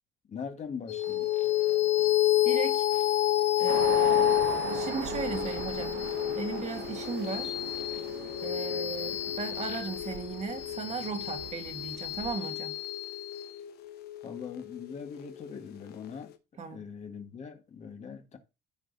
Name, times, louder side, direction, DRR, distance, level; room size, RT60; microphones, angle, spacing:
voice 1, 0.3-1.3 14.2-16.3 16.7-18.4, left 6 dB, 40° left, 1.6 m, -41 dB
sound 1, 0.9-15.6, left 13 dB, 70° left, 1.0 m, -29 dB
voice 2, 2.4-2.9 3.6-4.3 4.7-6.1 6.3-7.5 8.4-12.8 16.6-16.8, right 5 dB, 40° right, 1.5 m, -37 dB
sound 2, 3.7-12.3, right 11 dB, 75° right, 0.8 m, -40 dB
14.5 x 4.9 x 2.7 m
cardioid pair, 110°, 17 cm